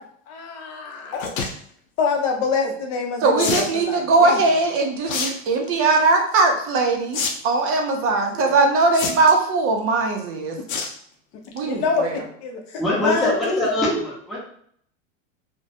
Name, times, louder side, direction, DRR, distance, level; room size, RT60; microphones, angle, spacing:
voice 1, 0.3-1.4 2.0-4.4 8.3-8.5 11.6-13.7, left 4 dB, 45° left, 2 dB, 0.6 m, -26 dB
sound 1, 1.1-1.5 3.4-3.7 5.1-5.3 5.7-6.0 7.1-7.3 7.6-7.7 8.9-9.4 10.7-10.9 11.3-11.6 12.0-12.1 12.2-12.3, left 5 dB, 90° left, 0.6 m, -26 dB
voice 2, 3.2-7.2 7.4-10.6 11.5-12.1, right 3 dB, 35° right, 2 dB, 0.5 m, -20 dB
voice 3, 12.8-14.4, left 1 dB, ahead, -7 dB, 0.7 m, -23 dB
2.2 x 2.1 x 2.7 m, 0.63 s
supercardioid pair, 110°, 39 cm